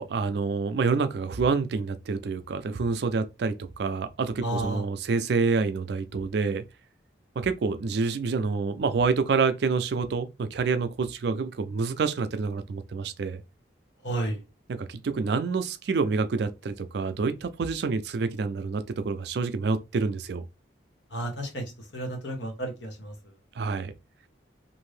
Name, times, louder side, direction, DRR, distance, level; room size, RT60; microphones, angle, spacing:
voice 1, 0.0-6.6 7.4-13.4 14.8-20.5 23.6-23.9, right 4 dB, 60° right, 0.4 m, -27 dB
voice 2, 4.4-4.8 14.0-14.4 21.1-23.3, right 1 dB, 65° left, 1.0 m, -32 dB
2.7 x 2.6 x 3.2 m
head